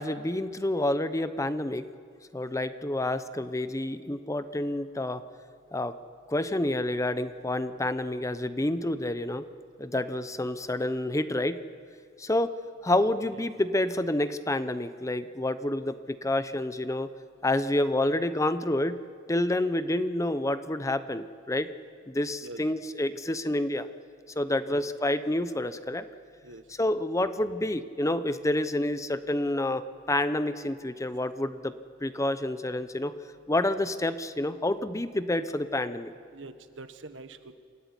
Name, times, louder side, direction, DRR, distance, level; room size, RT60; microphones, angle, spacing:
voice 1, 0.0-1.9 2.3-5.2 5.7-5.9 6.3-9.4 9.8-11.6 12.2-12.5 12.8-17.1 17.4-19.0 19.3-21.7 22.1-23.9 24.4-26.1 26.8-31.7 32.0-33.1 33.5-36.1, left 1 dB, 15° left, 12 dB, 0.8 m, -28 dB
voice 2, 36.3-37.5, right 2 dB, 85° right, 9 dB, 1.4 m, -44 dB
26.5 x 14.5 x 9.8 m, 2.1 s
head